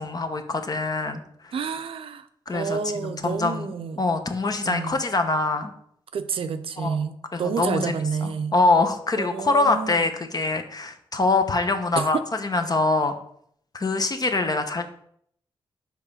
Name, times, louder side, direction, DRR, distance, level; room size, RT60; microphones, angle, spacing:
voice 1, 0.0-1.5 2.5-3.7 4.0-5.7 6.8-7.0 7.3-7.9 8.2-13.1 13.7-14.8, left 3 dB, 40° left, 7 dB, 0.9 m, -24 dB
voice 2, 1.5-2.3 2.5-4.0 4.6-5.0 6.1-8.5 9.2-10.1 12.0-12.2, right 6 dB, 65° right, 10 dB, 0.5 m, -29 dB
4.8 x 3.6 x 5.6 m, 0.67 s
cardioid pair, 55°, 10 cm